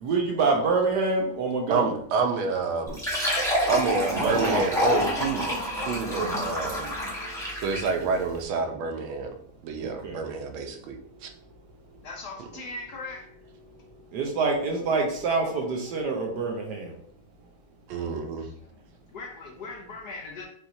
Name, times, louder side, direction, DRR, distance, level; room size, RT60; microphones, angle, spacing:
voice 1, 0.0-1.9 4.2-4.7 10.0-10.2 14.1-16.9, right 3 dB, 65° right, 1 dB, 1.1 m, -26 dB
voice 2, 1.7-3.0 3.7-5.6 5.9-7.0 7.6-9.3 9.6-11.0 11.2-11.3 17.9-18.5, right 5 dB, 90° right, 5 dB, 1.5 m, -28 dB
Fill (with liquid), 2.9-8.0, equal, ahead, 0.9 m, -27 dB
voice 3, 12.0-13.3 17.9-18.1 18.4-20.5, left 3 dB, 65° left, -1 dB, 1.2 m, -40 dB
5.7 x 2.8 x 2.6 m, 0.65 s
omnidirectional pair, 2.2 m